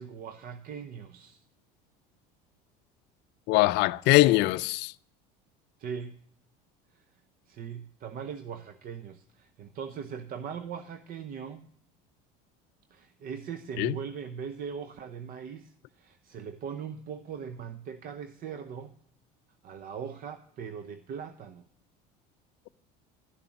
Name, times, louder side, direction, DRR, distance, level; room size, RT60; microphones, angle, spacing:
voice 1, 0.0-1.4 5.8-6.2 6.9-7.0 7.5-11.7 12.9-18.9 19.6-21.6, right 7 dB, 45° right, 0.8 m, -40 dB
voice 2, 3.5-4.9 13.8-13.9, left 19 dB, 60° left, 0.5 m, -22 dB
12.5 x 6.8 x 9.6 m
supercardioid pair, 100°, 20 cm